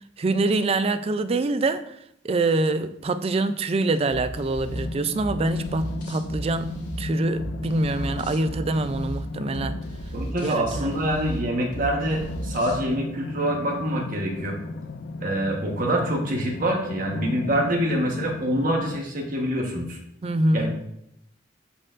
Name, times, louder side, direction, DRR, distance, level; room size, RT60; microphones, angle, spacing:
voice 1, 0.2-1.8 2.2-9.8 10.4-10.9 20.2-20.7, right 2 dB, 30° right, 0.4 m, -25 dB
sound 1, 4.1-12.8, right 1 dB, 45° left, 1.8 m, -36 dB
sound 2, 4.7-19.0, left 2 dB, 75° left, 0.4 m, -35 dB
voice 2, 10.1-14.6 15.2-20.0 20.5-20.7, right 1 dB, 50° right, 1.2 m, -26 dB
12.5 x 4.4 x 2.5 m
head